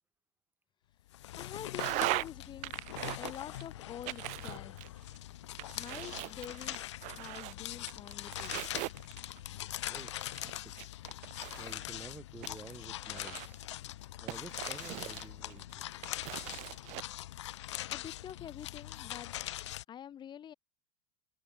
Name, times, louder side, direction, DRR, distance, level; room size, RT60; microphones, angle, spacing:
sound 1, 1.1-19.8, left 14 dB, 80° left, 3.6 m, -42 dB
voice 1, 1.4-2.7 3.2-4.8 5.7-6.9 7.1-8.5 17.8-19.3 19.9-20.5, left 9 dB, 30° left, 4.0 m, -46 dB
sound 2, 1.8-2.3 2.6-3.6 4.1-5.2 5.6-7.5 7.9-9.4 9.9-11.8 12.4-13.7 14.3-15.6 16.0-17.0, right 25 dB, 55° right, 2.1 m, -39 dB
voice 2, 9.9-10.7 11.6-13.6 14.2-15.8, right 3 dB, 15° right, 6.0 m, -51 dB
open air
supercardioid pair, 115°, 15 cm